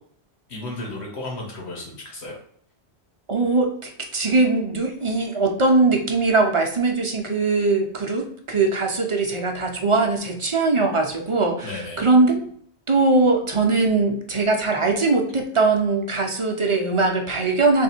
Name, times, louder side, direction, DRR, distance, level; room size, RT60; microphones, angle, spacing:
voice 1, 0.5-2.4 11.6-12.0, left 2 dB, 75° left, -1 dB, 1.5 m, -33 dB
voice 2, 3.3-12.4 12.9-17.8, right 3 dB, 40° right, 3 dB, 0.5 m, -21 dB
3.5 x 2.7 x 4.2 m, 0.62 s
omnidirectional pair, 1.1 m